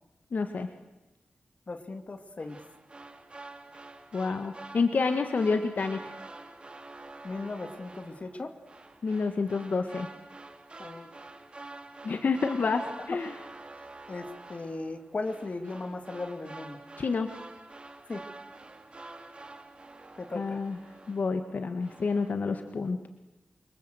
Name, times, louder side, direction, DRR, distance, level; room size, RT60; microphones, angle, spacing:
voice 1, 0.3-0.7 4.1-6.1 9.0-10.1 12.0-13.3 17.0-17.3 20.4-20.8 21.1-23.1, left 4 dB, 65° left, 7 dB, 1.8 m, -29 dB
voice 2, 1.7-2.6 7.2-8.6 10.8-11.1 14.1-16.8 18.1-18.2 20.2-20.6, left 3 dB, 45° left, 7 dB, 2.6 m, -37 dB
sound 1, 2.4-21.5 21.8-22.3, right 2 dB, 35° right, 2.8 m, -47 dB
28.5 x 24.5 x 8.1 m, 1.0 s
wide cardioid pair, 100°, 3 cm